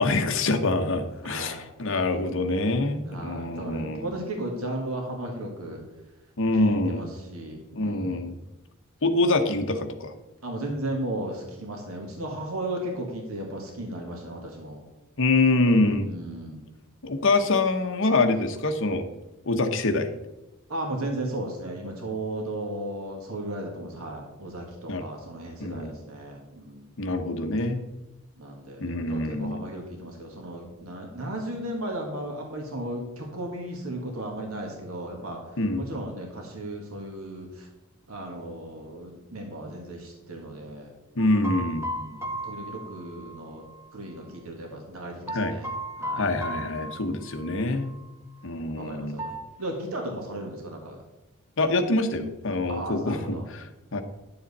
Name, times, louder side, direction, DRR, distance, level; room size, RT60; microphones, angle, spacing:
voice 1, 0.0-4.2 6.4-7.1 7.7-8.4 9.0-10.1 15.2-16.1 17.0-19.1 19.5-20.1 24.9-25.0 25.6-26.0 27.0-27.9 28.8-29.6 35.6-35.9 41.2-41.9 45.3-45.5 46.2-47.9 48.4-49.2 51.6-53.6 53.9-54.0, left 2 dB, 60° left, 6 dB, 0.9 m, -25 dB
voice 2, 1.2-1.6 3.1-5.8 6.6-8.3 10.4-14.8 16.0-16.6 20.7-26.9 28.4-37.7 38.1-40.9 41.9-43.7 43.9-45.7 46.0-46.3 47.6-47.7 48.7-49.3 49.6-51.0 52.7-53.5, right 1 dB, 75° right, 1 dB, 1.7 m, -35 dB
sound 1, 41.2-43.8 45.3-47.6 47.8-48.0 49.2-49.4, right 1 dB, 10° right, 1.5 m, -35 dB
10.5 x 7.1 x 4.1 m, 1.0 s
head